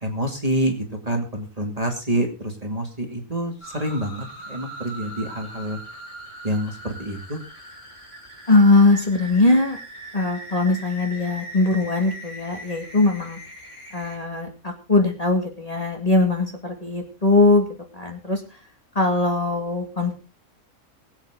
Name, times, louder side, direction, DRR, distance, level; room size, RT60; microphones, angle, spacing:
voice 1, 0.0-5.8 6.4-7.4, right 1 dB, 25° right, 2 dB, 2.5 m, -27 dB
sound 1, 3.6-14.2, right 1 dB, 55° left, 6.1 m, -40 dB
voice 2, 8.5-9.8 10.1-13.4 13.9-17.7 17.9-18.4 18.9-20.1, left 2 dB, 25° left, 2 dB, 2.3 m, -20 dB
22.0 x 8.3 x 3.8 m, 0.33 s
omnidirectional pair, 1.5 m